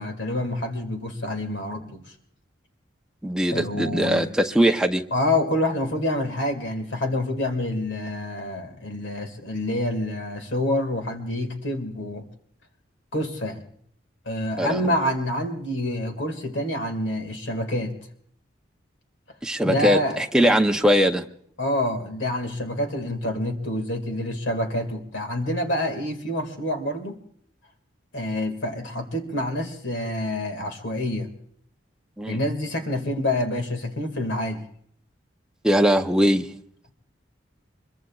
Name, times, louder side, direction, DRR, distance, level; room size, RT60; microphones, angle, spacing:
voice 1, 0.0-2.0 3.5-4.3 5.1-12.3 13.1-13.6 14.3-18.0 19.6-20.2 21.6-27.2 28.1-31.3 32.3-34.6, left 1 dB, 75° left, 6 dB, 2.1 m, -27 dB
voice 2, 3.2-5.0 14.6-14.9 19.4-21.3 32.2-32.4 35.6-36.5, equal, 5° right, 4 dB, 0.6 m, -21 dB
24.5 x 22.0 x 2.4 m, 0.65 s
head